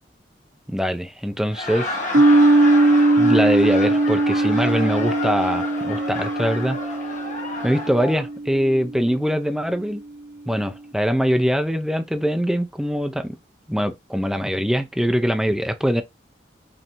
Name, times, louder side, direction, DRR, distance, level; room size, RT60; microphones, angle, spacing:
voice 1, 0.7-2.0 3.2-6.8 7.6-10.0 10.5-13.4 13.7-16.0, equal, ahead, 0.5 m, -23 dB
Laughter, 1.5-8.3, left 2 dB, 40° left, 1.3 m, -30 dB
sound 1, 2.1-8.9, right 2 dB, 70° right, 1.0 m, -20 dB
5.3 x 2.7 x 2.9 m
head